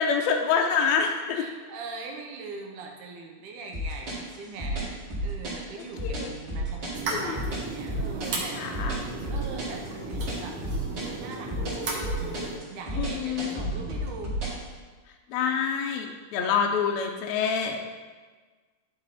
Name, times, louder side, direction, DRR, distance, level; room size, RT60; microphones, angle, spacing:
voice 1, 0.0-1.4 6.0-6.3 7.1-7.4 8.6-9.1 12.9-13.7 15.3-17.8, left 6 dB, 80° left, 2 dB, 1.6 m, -27 dB
voice 2, 1.3-8.7 9.3-10.6 11.1-14.3 16.4-16.7, right 4 dB, 75° right, 1 dB, 2.2 m, -41 dB
sound 1, 3.7-14.6, equal, 40° right, 2.4 m, -32 dB
sound 2, 6.9-12.6, right 3 dB, 60° right, 1.6 m, -35 dB
11.0 x 4.1 x 4.1 m, 1.4 s
omnidirectional pair, 3.7 m